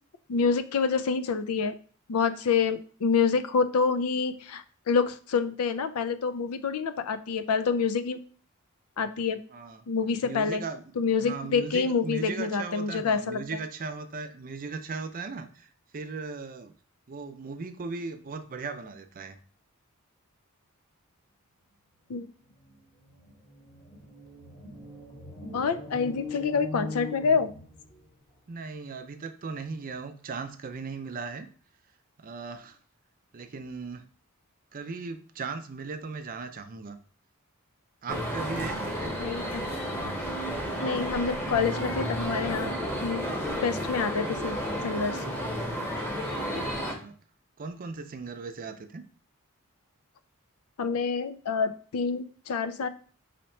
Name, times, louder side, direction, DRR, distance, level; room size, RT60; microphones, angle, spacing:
voice 1, 0.3-1.8 2.1-8.2 9.0-9.4 9.9-10.6 11.0-13.4 22.1-22.3 25.5-27.5 39.2-39.6 40.8-42.7 43.0-43.2 43.6-44.6 44.8-45.2 50.8-52.9, left 5 dB, 90° left, 11 dB, 0.4 m, -27 dB
voice 2, 9.5-9.8 10.2-10.8 11.2-16.7 17.1-19.4 28.5-31.5 32.2-32.8 33.3-34.0 34.7-37.0 38.0-39.1 46.7-47.1 47.6-49.0, right 4 dB, 40° right, 8 dB, 0.5 m, -37 dB
sound 1, 22.7-22.8 23.0-28.1, left 3 dB, 30° left, 1.2 m, -41 dB
sound 2, 38.1-46.9, equal, 10° left, 0.9 m, -32 dB
4.2 x 2.8 x 4.3 m, 0.43 s
head